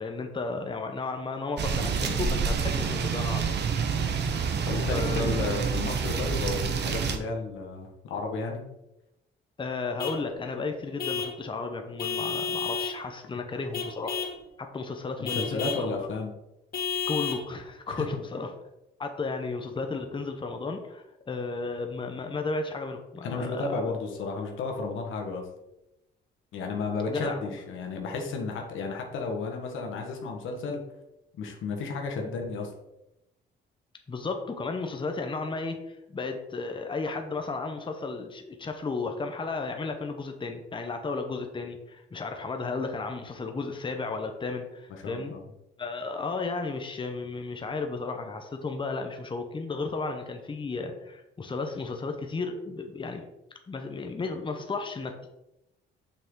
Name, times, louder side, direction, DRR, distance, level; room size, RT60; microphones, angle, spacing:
voice 1, 0.0-3.5 4.9-5.5 9.6-14.2 14.6-16.1 17.1-18.5 19.0-23.8 27.1-27.4 34.1-45.3 45.8-53.3 53.7-55.4, left 3 dB, 25° left, 5 dB, 0.9 m, -34 dB
sound 1, 1.6-7.2, right 6 dB, 60° right, 1.0 m, -28 dB
voice 2, 4.6-8.7 15.2-16.3 17.9-18.1 23.2-25.5 26.5-30.9 31.4-32.7 44.9-45.4, left 3 dB, 80° left, 2 dB, 1.5 m, -33 dB
Vehicle horn car horn honking / Truck, 10.0-10.3 11.0-11.4 12.0-13.0 13.7-14.4 15.2-15.9 16.7-17.5, left 6 dB, 50° left, 2.1 m, -31 dB
6.7 x 5.8 x 3.8 m, 0.90 s
cardioid pair, 90°, 20 cm